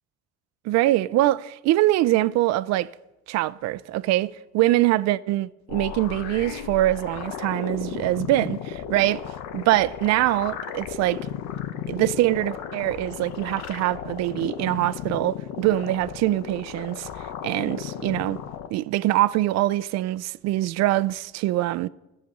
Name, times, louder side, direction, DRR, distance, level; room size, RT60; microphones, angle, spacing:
voice 1, 0.6-2.9 3.3-9.2 9.5-11.3 11.9-17.1 17.4-18.4 18.7-21.9, right 16 dB, 65° right, 0.4 m, -23 dB
sound 1, 5.7-18.7, left 9 dB, 75° left, 0.8 m, -35 dB
11.5 x 6.6 x 6.0 m
supercardioid pair, 90°, 29 cm